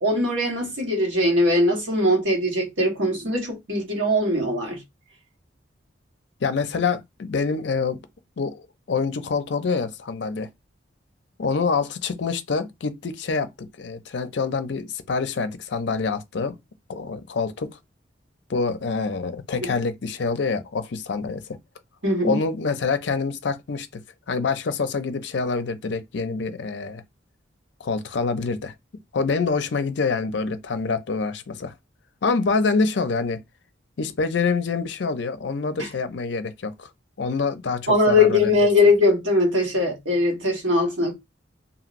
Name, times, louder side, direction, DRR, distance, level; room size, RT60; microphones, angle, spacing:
voice 1, 0.0-4.8 19.6-19.7 22.0-22.4 35.8-35.9 37.9-41.1, left 2 dB, 80° right, 1.3 m, -21 dB
voice 2, 6.4-8.0 8.4-10.5 11.4-16.6 16.9-17.8 18.5-21.6 22.2-24.0 24.3-27.0 27.8-28.7 29.1-31.7 32.2-33.4 34.0-36.9 37.2-38.5, left 4 dB, 60° left, 0.5 m, -26 dB
3.0 x 2.7 x 2.5 m
head